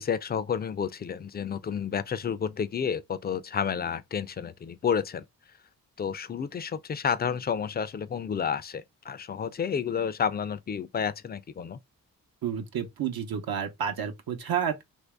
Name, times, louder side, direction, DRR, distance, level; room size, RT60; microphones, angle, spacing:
voice 1, 0.0-5.2 6.0-11.8, left 7 dB, 30° left, 0.4 m, -30 dB
voice 2, 12.4-14.8, right 8 dB, 75° right, 0.8 m, -30 dB
3.0 x 2.6 x 3.3 m
cardioid pair, 75°, 36 cm